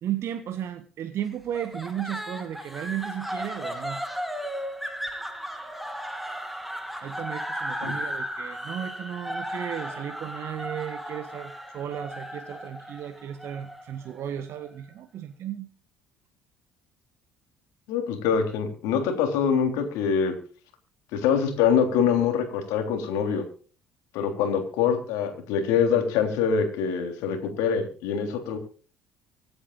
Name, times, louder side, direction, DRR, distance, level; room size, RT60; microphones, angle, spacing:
voice 1, 0.0-4.0 7.0-15.7, right 10 dB, 50° right, 8 dB, 1.4 m, -34 dB
sound 1, 1.5-14.7, equal, ahead, 2.8 m, -35 dB
voice 2, 17.9-20.3 21.1-23.4 24.1-28.6, left 7 dB, 65° left, 5 dB, 3.4 m, -24 dB
25.0 x 9.5 x 2.5 m, 0.38 s
figure-of-eight pair, 55°, 6 cm